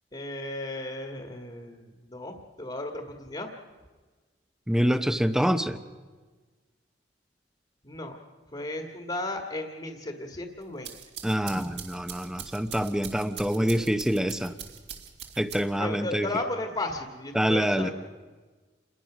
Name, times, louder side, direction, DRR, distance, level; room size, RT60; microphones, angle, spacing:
voice 1, 0.1-3.5 7.8-8.2 8.5-10.9 15.8-17.9, left 2 dB, 30° left, 3 dB, 1.8 m, -35 dB
voice 2, 4.7-5.8 11.2-14.5 15.4-16.3 17.3-17.9, equal, 5° right, 10 dB, 0.8 m, -26 dB
sound 1, 10.6-15.9, right 8 dB, 65° right, 2.5 m, -43 dB
28.5 x 21.5 x 6.2 m, 1.4 s
head